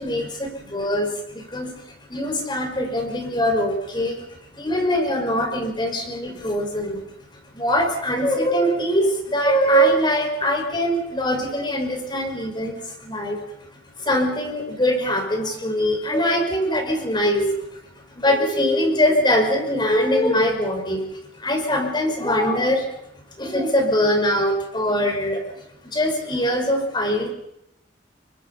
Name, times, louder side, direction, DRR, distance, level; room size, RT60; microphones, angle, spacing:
voice 1, 0.0-7.0 7.5-13.4 14.0-17.7 18.2-21.0 21.4-22.9 23.4-27.3, equal, 25° left, 4 dB, 5.6 m, -22 dB
29.5 x 24.5 x 5.6 m, 0.80 s
head